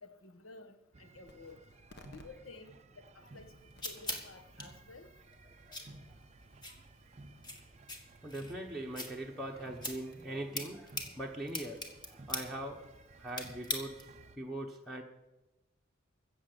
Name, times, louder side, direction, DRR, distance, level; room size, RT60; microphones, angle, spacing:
voice 1, 0.0-1.6 2.1-2.7 3.1-3.5 3.8-5.1, left 3 dB, 85° left, 7 dB, 1.4 m, -52 dB
sound 1, 0.9-14.4, right 3 dB, 35° right, 0.6 m, -57 dB
sound 2, 1.2-7.5, left 1 dB, 55° left, 1.6 m, -62 dB
sound 3, 3.2-14.3, left 2 dB, 20° left, 1.8 m, -44 dB
voice 2, 5.4-5.9 8.2-12.8 13.2-15.0, right 1 dB, ahead, -2 dB, 1.1 m, -42 dB
15.5 x 7.0 x 7.9 m, 0.99 s
head